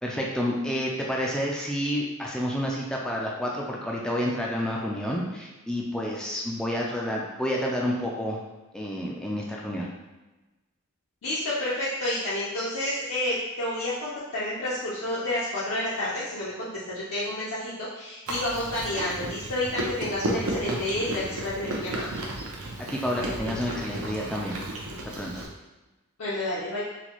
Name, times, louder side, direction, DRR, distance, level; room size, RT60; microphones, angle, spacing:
voice 1, 0.0-8.4 8.7-9.9 22.8-24.6 25.1-25.4, equal, 5° left, -3 dB, 0.3 m, -29 dB
voice 2, 11.2-22.1 26.2-26.8, left 1 dB, 70° left, -8 dB, 0.6 m, -30 dB
Chewing mastication, 18.3-25.5, right 1 dB, 70° right, 0.6 m, -33 dB
4.0 x 2.3 x 2.9 m, 1.1 s
head